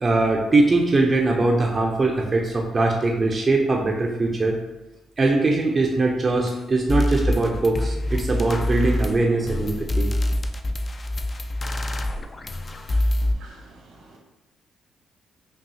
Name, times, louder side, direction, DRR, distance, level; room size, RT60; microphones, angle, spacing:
voice 1, 0.0-4.6 5.2-10.1 12.9-13.0, right 2 dB, 30° right, 0 dB, 0.5 m, -21 dB
sound 1, 6.5-6.6 6.9-13.3, left 1 dB, 35° left, 0.4 m, -25 dB
voice 2, 13.3-14.2, right 2 dB, 80° right, -2 dB, 1.2 m, -48 dB
5.4 x 2.4 x 2.7 m, 1.0 s
cardioid pair, 90°, 0 cm